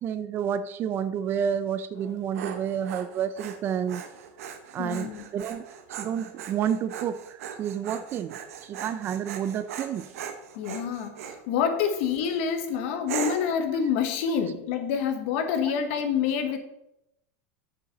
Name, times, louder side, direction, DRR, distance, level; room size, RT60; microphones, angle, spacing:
voice 1, 0.0-4.0 4.7-5.6 5.9-10.1, right 8 dB, 30° right, 13 dB, 0.4 m, -30 dB
Dog, 2.0-11.4 12.0-12.4 13.1-13.6, right 8 dB, 80° right, 1.1 m, -39 dB
voice 2, 4.8-5.3 10.5-16.6, left 7 dB, 60° left, 7 dB, 1.3 m, -27 dB
8.1 x 7.0 x 3.9 m, 0.83 s
supercardioid pair, 155°, 8 cm